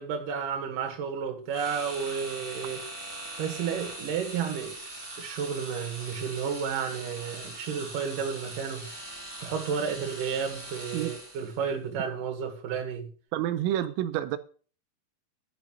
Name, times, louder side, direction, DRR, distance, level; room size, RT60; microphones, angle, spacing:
voice 1, 0.0-2.8 3.4-4.7 5.2-8.9 9.4-13.1, right 7 dB, 50° right, 2.9 m, -32 dB
sound 1, 1.5-11.6, right 1 dB, 5° right, 2.1 m, -41 dB
voice 2, 13.3-14.4, right 12 dB, 85° right, 3.5 m, -28 dB
11.5 x 5.7 x 7.5 m
omnidirectional pair, 5.9 m